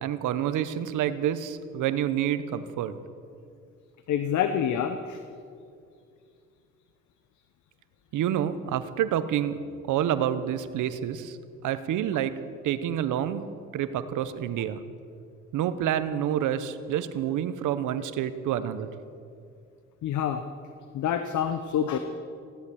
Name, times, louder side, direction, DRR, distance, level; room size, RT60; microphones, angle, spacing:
voice 1, 0.0-2.9 8.1-9.6 9.9-11.4 11.6-12.3 12.6-13.5 13.7-14.8 15.5-18.9, right 10 dB, 85° right, 12 dB, 0.9 m, -28 dB
voice 2, 4.1-5.2 20.0-20.4 20.9-22.0, left 9 dB, 75° left, 8 dB, 0.9 m, -27 dB
16.0 x 11.5 x 7.0 m, 2.4 s
cardioid pair, 90°, 30 cm